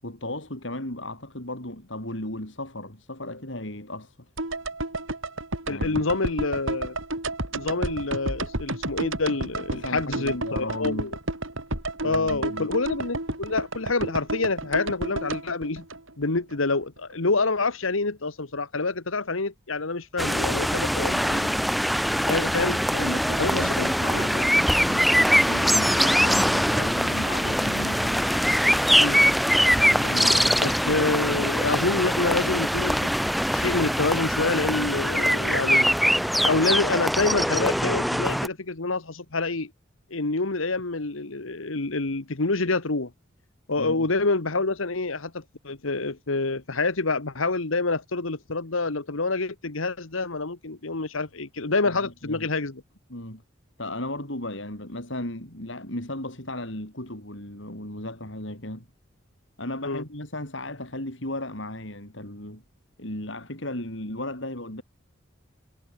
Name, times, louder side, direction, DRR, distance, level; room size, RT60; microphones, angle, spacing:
voice 1, 0.0-4.2 5.7-6.0 9.7-11.1 12.0-12.7 22.9-28.3 29.7-30.6 43.8-44.1 51.9-52.5 53.1-53.4 53.8-58.9 59.6-62.6 63.0-64.8, left 1 dB, 70° left, 6.0 m, -35 dB
sound 1, 4.4-16.6 16.8-16.9, right 2 dB, 80° right, 7.1 m, -31 dB
voice 2, 5.7-7.0 7.5-11.2 12.0-15.9 16.2-21.5 22.3-22.8 23.4-23.9 24.1-24.3 29.0-29.2 30.6-33.1 33.5-35.9 36.4-39.7 40.1-43.1 43.7-52.8 59.8-60.0, left 3 dB, 85° left, 1.6 m, -27 dB
sound 2, 20.2-38.5, equal, ahead, 1.4 m, -22 dB
head